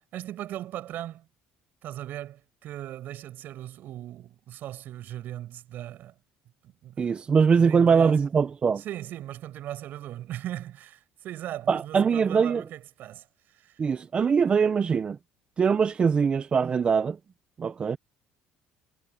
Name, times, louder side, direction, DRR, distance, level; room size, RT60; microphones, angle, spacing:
voice 1, 0.1-1.3 1.8-6.1 6.6-8.2 8.8-13.8, right 13 dB, 60° right, 6.6 m, -39 dB
voice 2, 7.0-8.8 11.7-12.6 13.8-15.2 15.6-17.2 17.6-18.0, right 6 dB, 30° right, 0.7 m, -22 dB
cardioid pair, 115°, 4 cm